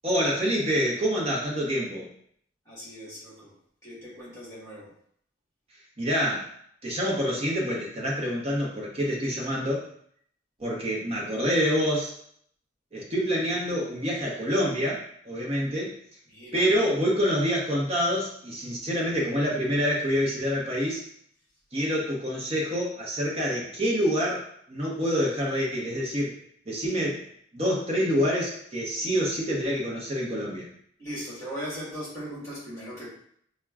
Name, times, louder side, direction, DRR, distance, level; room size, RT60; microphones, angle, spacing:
voice 1, 0.0-2.1 6.0-6.5 6.8-9.8 10.6-12.1 12.9-15.9 16.5-21.1 21.7-26.4 26.7-27.2 27.5-30.7, equal, 30° right, -3 dB, 0.8 m, -27 dB
voice 2, 2.6-3.5 3.8-4.9 16.3-16.7 31.0-33.1, equal, 15° left, -7 dB, 1.5 m, -38 dB
5.9 x 2.2 x 2.3 m, 0.65 s
head